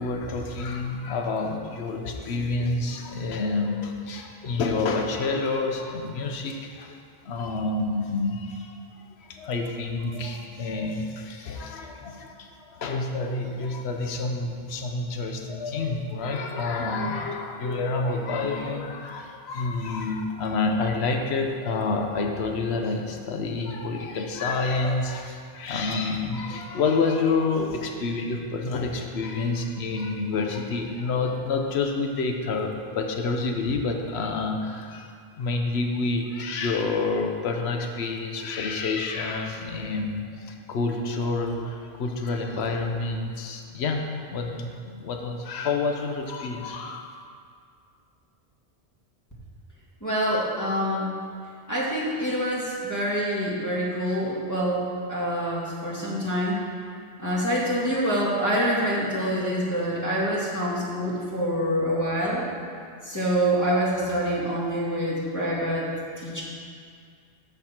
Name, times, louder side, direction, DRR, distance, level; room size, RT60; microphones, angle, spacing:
voice 1, 0.0-7.0 7.2-8.8 9.2-35.1 35.4-47.2, left 3 dB, 75° left, 3 dB, 1.1 m, -28 dB
voice 2, 50.0-51.1 51.7-56.6 57.2-62.5 63.0-65.9 66.2-66.4, equal, 15° left, -7 dB, 2.1 m, -26 dB
13.5 x 5.8 x 4.4 m, 2.2 s
omnidirectional pair, 1.1 m